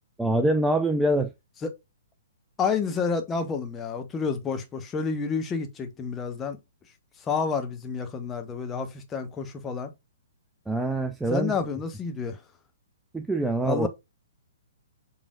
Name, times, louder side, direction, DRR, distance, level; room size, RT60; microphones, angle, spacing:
voice 1, 0.2-1.3 10.7-11.5 13.1-13.9, right 1 dB, 5° right, 0.3 m, -24 dB
voice 2, 2.6-6.6 7.2-9.9 11.3-12.4 13.6-13.9, left 5 dB, 15° left, 0.8 m, -29 dB
5.1 x 3.3 x 2.3 m
figure-of-eight pair, 120°, 0 cm